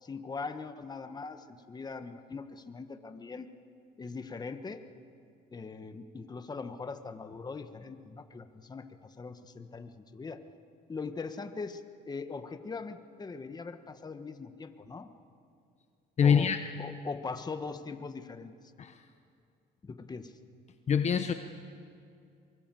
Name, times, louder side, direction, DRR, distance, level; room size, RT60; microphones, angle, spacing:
voice 1, 0.0-3.5 4.0-4.8 5.5-10.4 10.9-15.1 16.2-16.5 16.8-18.5 19.8-20.3, left 4 dB, 25° left, 8 dB, 1.4 m, -41 dB
voice 2, 16.2-16.6 18.8-19.0 20.9-21.3, left 7 dB, 40° left, 7 dB, 1.0 m, -24 dB
23.5 x 23.5 x 7.7 m, 2.4 s
cardioid pair, 110°, 17 cm